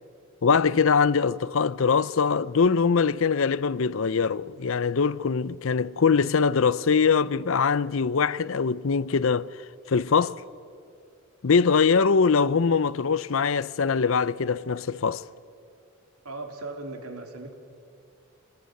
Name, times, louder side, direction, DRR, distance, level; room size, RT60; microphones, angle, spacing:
voice 1, 0.4-9.5 9.9-10.4 11.4-15.2, left 5 dB, 65° left, 0.6 m, -22 dB
voice 2, 16.2-17.5, right 2 dB, 90° right, 3.4 m, -37 dB
26.5 x 20.0 x 9.2 m
head